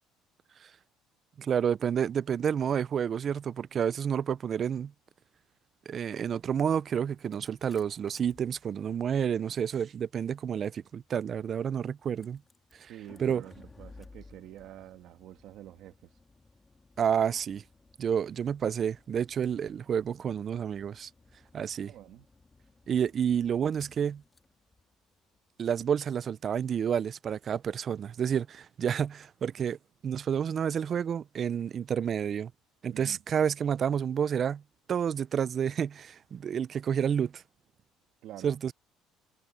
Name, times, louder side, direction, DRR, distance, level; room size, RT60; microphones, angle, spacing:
voice 1, 1.4-4.9 5.9-12.4 12.7-12.9 13.2-13.4 17.0-17.6 18.0-21.1 21.5-21.9 22.9-24.2 25.6-29.8 30.0-32.5 32.8-34.6 34.9-37.4 38.4-38.7, right 8 dB, 35° right, 0.3 m, -29 dB
Engine starting, 7.1-26.1, left 3 dB, 15° left, 1.8 m, -59 dB
voice 2, 12.9-16.0 21.9-22.3 32.9-33.2 38.2-38.5, right 13 dB, 60° right, 1.8 m, -47 dB
cardioid pair, 140°, 0 cm